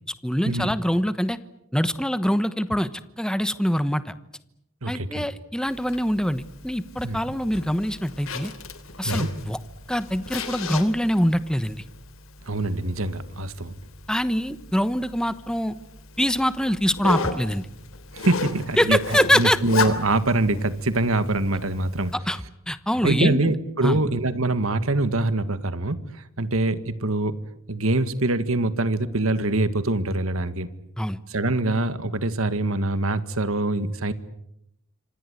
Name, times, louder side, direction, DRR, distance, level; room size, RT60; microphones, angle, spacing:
voice 1, 0.2-1.4 1.7-2.9 3.2-4.1 4.9-8.5 9.0-9.6 9.9-11.8 14.1-15.7 16.2-17.7 18.8-19.6 22.3-23.5 23.8-24.0 31.0-31.2, equal, 5° left, 13 dB, 1.1 m, -24 dB
voice 2, 4.8-5.3 7.0-7.2 9.0-9.3 12.5-13.7 18.1-19.0 19.3-22.1 23.0-26.0 26.4-27.4 27.7-30.7 31.3-34.1, right 2 dB, 80° right, 12 dB, 1.9 m, -24 dB
Zipper (clothing), 5.7-22.1, left 4 dB, 75° left, 3.3 m, -36 dB
26.5 x 26.5 x 8.3 m, 0.78 s
head